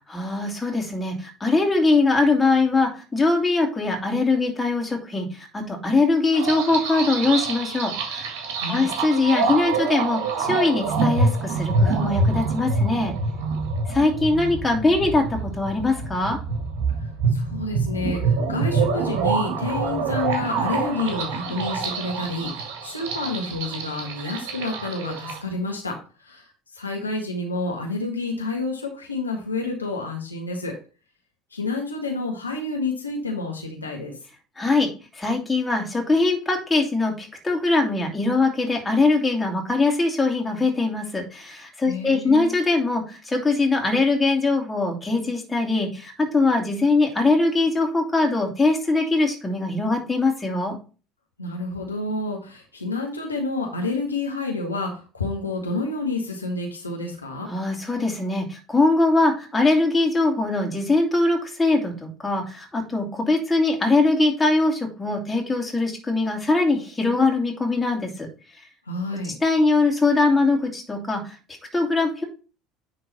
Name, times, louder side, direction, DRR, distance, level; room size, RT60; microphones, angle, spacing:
voice 1, 0.1-8.3 8.7-13.1 13.9-16.4 34.6-50.8 57.5-68.3 69.4-71.4 71.7-72.2, left 3 dB, 15° left, 1 dB, 2.6 m, -22 dB
sound 1, 6.3-25.4, right 4 dB, 60° right, 1.8 m, -26 dB
voice 2, 8.6-8.9 17.3-30.7 31.5-34.1 41.8-42.5 51.4-57.5 68.9-69.3, left 3 dB, 85° left, 1 dB, 1.3 m, -29 dB
9.9 x 3.8 x 4.2 m, 0.35 s
figure-of-eight pair, 65°, 0 cm